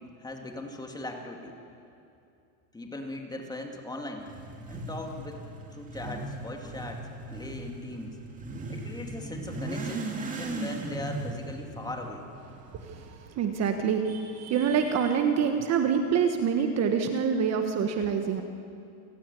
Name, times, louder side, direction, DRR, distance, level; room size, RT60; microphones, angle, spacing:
voice 1, 0.2-1.6 2.7-4.3 4.7-5.5 5.7-8.2 8.7-12.3, left 2 dB, 10° left, 2 dB, 2.5 m, -39 dB
Motorcycle / Accelerating revving vroom, 4.2-13.1, right 2 dB, 15° right, 2.7 m, -38 dB
voice 2, 12.8-18.4, right 6 dB, 35° right, 6 dB, 1.5 m, -26 dB
28.5 x 17.0 x 10.0 m, 2.6 s
supercardioid pair, 150°, 45 cm